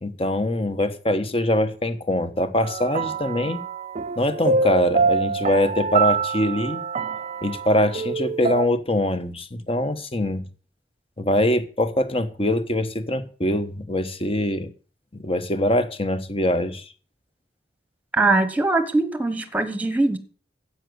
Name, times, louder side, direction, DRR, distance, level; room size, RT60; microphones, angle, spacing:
voice 1, 0.0-3.6 4.2-6.8 7.4-10.4 11.2-14.7 15.1-16.8, left 1 dB, 30° left, 1.2 m, -23 dB
sound 1, 2.6-8.7, right 4 dB, 35° right, 0.5 m, -25 dB
voice 2, 18.1-20.2, right 2 dB, 10° right, 1.2 m, -21 dB
10.0 x 8.2 x 8.0 m
head